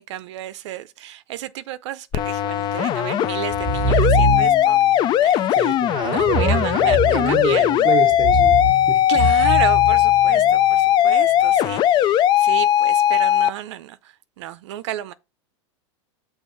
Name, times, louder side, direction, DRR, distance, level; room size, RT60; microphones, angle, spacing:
voice 1, 0.0-4.8 5.2-5.8 6.0-7.9 9.1-15.1, right 12 dB, 70° right, 0.5 m, -32 dB
sound 1, 2.1-13.5, left 11 dB, 30° left, 0.4 m, -18 dB
sound 2, 3.5-4.8 6.2-7.6 8.1-10.6, right 1 dB, 5° left, 1.1 m, -24 dB
voice 2, 5.5-9.0, right 9 dB, 30° right, 0.9 m, -28 dB
6.2 x 3.3 x 5.6 m
supercardioid pair, 135°, 15 cm